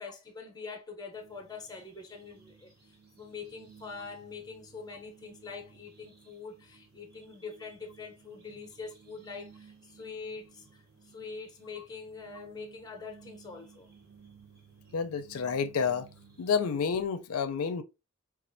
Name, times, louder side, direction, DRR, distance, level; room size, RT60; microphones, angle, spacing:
voice 1, 0.0-10.8 11.1-13.9, left 4 dB, 20° left, 0.6 m, -44 dB
sound 1, 1.1-17.0, right 6 dB, 45° right, 0.8 m, -57 dB
voice 2, 14.9-16.1 16.4-17.8, left 6 dB, 85° left, 0.4 m, -29 dB
4.1 x 2.4 x 2.5 m
head